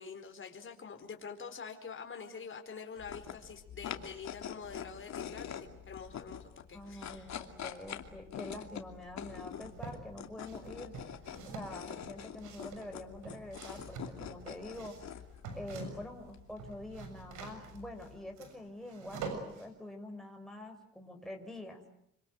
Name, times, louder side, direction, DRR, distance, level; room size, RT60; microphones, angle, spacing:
voice 1, 0.0-7.3, left 6 dB, 40° left, 4 dB, 4.6 m, -46 dB
sound 1, 3.0-18.3, left 9 dB, 65° left, 2.7 m, -46 dB
voice 2, 6.7-10.9 11.4-15.0 15.5-21.8, left 1 dB, ahead, 2 dB, 6.1 m, -46 dB
sound 2, 9.3-10.0 10.4-16.2 16.5-19.7, right 4 dB, 85° right, 6.8 m, -46 dB
26.5 x 26.0 x 8.0 m, 0.72 s
cardioid pair, 90°, 30 cm